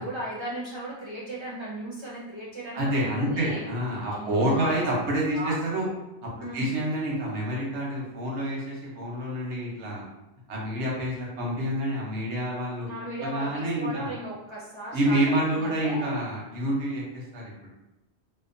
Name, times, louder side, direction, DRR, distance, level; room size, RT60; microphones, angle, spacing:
voice 1, 0.0-3.6 4.1-5.1 5.3-5.5 6.4-6.7 12.9-16.1, right 1 dB, 40° right, -7 dB, 0.4 m, -36 dB
voice 2, 2.7-5.9 6.5-10.1 10.5-12.9 13.2-14.1 14.9-17.5, right 1 dB, 85° right, -3 dB, 1.1 m, -28 dB
2.8 x 2.0 x 2.6 m, 0.95 s
omnidirectional pair, 1.1 m